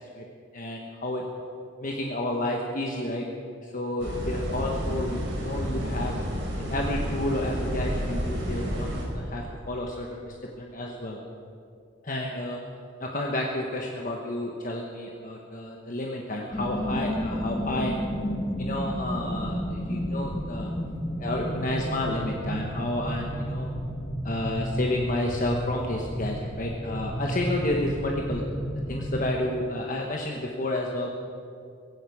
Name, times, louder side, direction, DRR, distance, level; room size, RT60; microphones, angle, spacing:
voice 1, 0.5-1.2 1.8-3.2 3.6-6.2 6.7-11.2 12.0-12.6 13.0-17.9 18.6-20.7 21.2-23.7 24.2-28.4 28.9-31.1, left 1 dB, 45° left, 0 dB, 1.2 m, -31 dB
sound 1, 4.0-9.1, equal, 75° right, 3.6 m, -30 dB
sound 2, 16.5-29.3, equal, 20° left, 1.3 m, -32 dB
16.5 x 16.5 x 5.0 m, 2.5 s
head